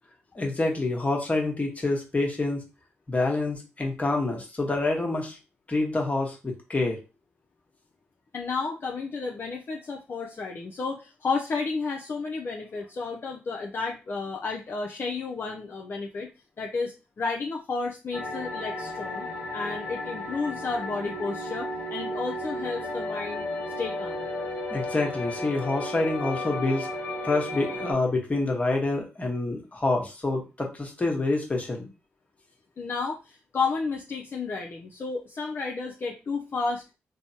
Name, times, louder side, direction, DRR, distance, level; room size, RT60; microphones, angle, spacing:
voice 1, 0.3-2.6 3.1-5.4 5.7-7.0 24.7-26.9 27.2-31.9, left 2 dB, 30° left, 1 dB, 1.1 m, -27 dB
voice 2, 8.3-16.3 16.6-23.5 23.8-24.3 32.8-36.8, left 4 dB, 50° left, 0 dB, 0.4 m, -32 dB
sound 1, 18.1-27.9, left 1 dB, 75° left, 0.8 m, -33 dB
3.2 x 2.0 x 2.7 m, 0.30 s
supercardioid pair, 50°, 5 cm